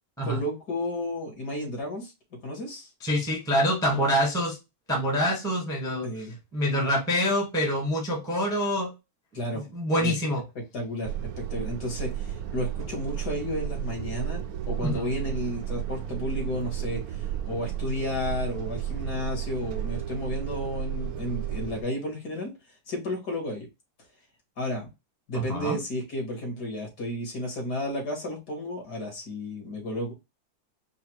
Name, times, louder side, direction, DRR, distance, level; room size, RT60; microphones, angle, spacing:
voice 1, 0.2-2.1 2.4-2.9 6.0-6.4 9.3-9.7 10.0-10.1 10.7-22.5 22.9-23.7 24.6-24.9 25.3-30.1, left 1 dB, 55° left, 0 dB, 2.5 m, -32 dB
voice 2, 3.0-4.6 4.9-6.1 6.5-8.9 9.5-10.4 14.8-15.1 25.3-25.8, equal, ahead, 0 dB, 1.1 m, -26 dB
sound 1, 11.0-21.8, right 11 dB, 80° right, 0.8 m, -33 dB
4.8 x 2.3 x 4.5 m, 0.24 s
omnidirectional pair, 2.1 m